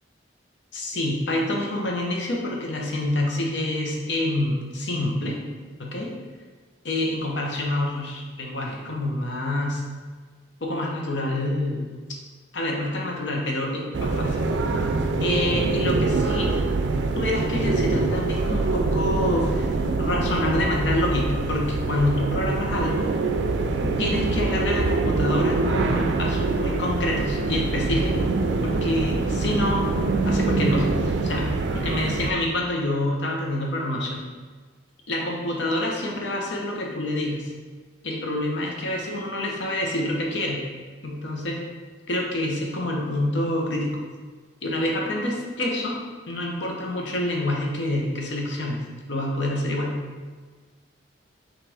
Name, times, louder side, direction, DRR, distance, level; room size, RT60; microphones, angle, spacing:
voice 1, 0.7-5.4 5.8-6.1 6.8-9.8 10.6-11.9 12.5-14.4 15.2-16.5 17.1-19.7 20.0-23.1 24.0-28.2 28.6-29.8 30.2-34.2 35.1-37.5 38.0-40.6 41.0-41.6 42.1-43.9 44.6-46.0 46.3-48.8 49.1-50.0, left 1 dB, 75° left, -1 dB, 0.8 m, -27 dB
sound 1, 13.9-32.3, right 3 dB, 70° right, 0.3 m, -24 dB
6.0 x 2.5 x 3.4 m, 1.4 s
head